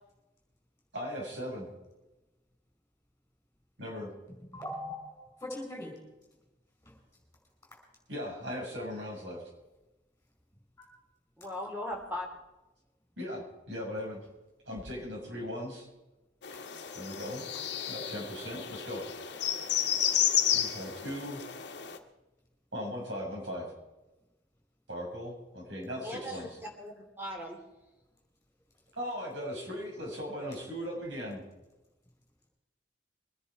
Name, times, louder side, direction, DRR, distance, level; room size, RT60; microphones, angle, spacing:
voice 1, 0.9-1.7 3.8-4.1 8.1-9.5 13.2-14.2 14.6-15.9 16.9-17.4 17.9-19.1 20.5-21.4 22.7-23.7 24.9-26.5 28.9-31.4, equal, 80° right, -2 dB, 6.2 m, -38 dB
voice 2, 4.5-5.9 10.8-10.9, left 1 dB, 10° left, 0 dB, 5.0 m, -40 dB
voice 3, 11.4-12.3 26.0-27.6, left 1 dB, 10° right, 1 dB, 2.8 m, -39 dB
sound 1, 16.4-22.0, left 10 dB, 70° left, 1.3 m, -32 dB
23.0 x 10.0 x 4.6 m, 1.0 s
head